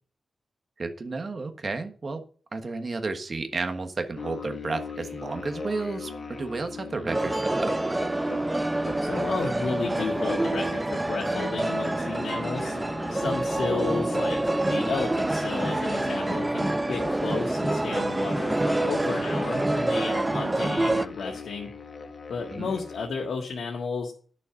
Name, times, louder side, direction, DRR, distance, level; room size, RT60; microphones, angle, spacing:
voice 1, 0.8-2.2 2.5-7.7 22.5-22.7, right 3 dB, 35° right, 7 dB, 1.4 m, -32 dB
sound 1, 4.1-23.1, left 4 dB, 40° left, 1.4 m, -40 dB
sound 2, 7.1-21.1, right 2 dB, 15° right, 0.4 m, -27 dB
voice 2, 9.0-12.8 13.1-21.7 22.3-24.1, left 5 dB, 90° left, 0 dB, 1.9 m, -33 dB
10.5 x 6.9 x 5.9 m, 0.43 s
wide cardioid pair, 175°, 0 cm